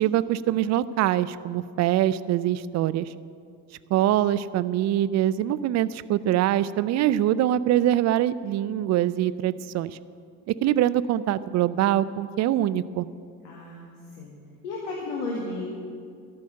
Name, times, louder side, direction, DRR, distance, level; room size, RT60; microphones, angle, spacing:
voice 1, 0.0-3.1 3.9-10.0 10.5-13.1, right 12 dB, 35° right, 17 dB, 0.4 m, -24 dB
voice 2, 13.4-14.4 14.6-15.6, left 2 dB, 70° left, -2 dB, 1.9 m, -34 dB
12.5 x 6.6 x 8.8 m, 2.3 s
hypercardioid pair, 60°, 48 cm